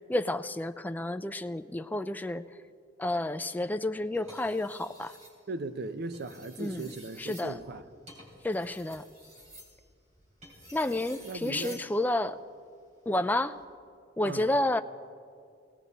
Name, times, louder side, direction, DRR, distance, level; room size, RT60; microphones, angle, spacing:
voice 1, 0.0-2.4 3.0-5.1 6.6-7.6 8.4-9.0 10.7-12.4 13.1-13.6 14.2-14.8, left 1 dB, 10° left, 0.3 m, -30 dB
sound 1, 4.1-5.4 6.0-11.9 13.4-13.6, equal, 40° right, 3.4 m, -52 dB
voice 2, 5.5-7.8 11.2-11.8 14.2-14.5, right 3 dB, 60° right, 0.7 m, -38 dB
18.0 x 17.5 x 4.1 m
head